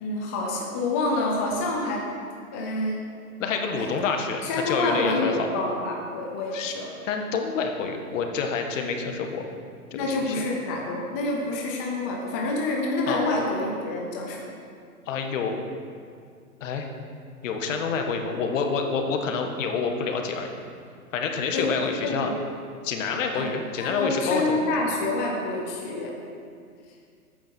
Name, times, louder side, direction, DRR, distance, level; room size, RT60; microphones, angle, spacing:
voice 1, 0.0-2.1 2.5-3.1 3.8-3.9 4.4-6.9 9.9-14.4 21.5-22.4 23.3-23.5 23.8-26.1, left 2 dB, 10° left, -1 dB, 0.4 m, -27 dB
voice 2, 3.4-5.5 6.5-6.8 7.1-9.4 9.9-10.4 13.1-13.2 15.1-15.6 16.6-16.9 17.4-20.5 21.1-22.3 22.8-24.6, left 5 dB, 55° left, 4 dB, 1.7 m, -28 dB
14.0 x 9.2 x 4.5 m, 2.2 s
hypercardioid pair, 135°, 45 cm